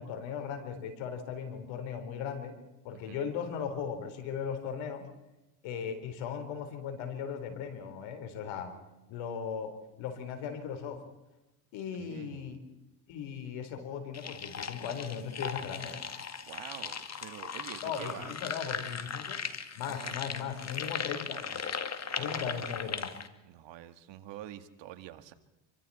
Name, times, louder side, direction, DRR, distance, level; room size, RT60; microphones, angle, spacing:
voice 1, 0.0-2.5 2.8-5.1 5.6-8.7 9.1-9.7 10.0-11.0 11.7-12.6 13.1-16.0 17.8-19.4 19.7-21.6 22.2-23.1, left 7 dB, 80° left, 7 dB, 4.3 m, -38 dB
voice 2, 2.9-3.3 12.0-12.6 16.4-18.5 19.8-20.4 22.0-22.7 23.4-25.3, right 12 dB, 70° right, 9 dB, 2.1 m, -47 dB
sound 1, 14.1-23.3, left 6 dB, 35° left, 2.0 m, -38 dB
28.0 x 24.0 x 4.4 m, 1.0 s
supercardioid pair, 90°, 46 cm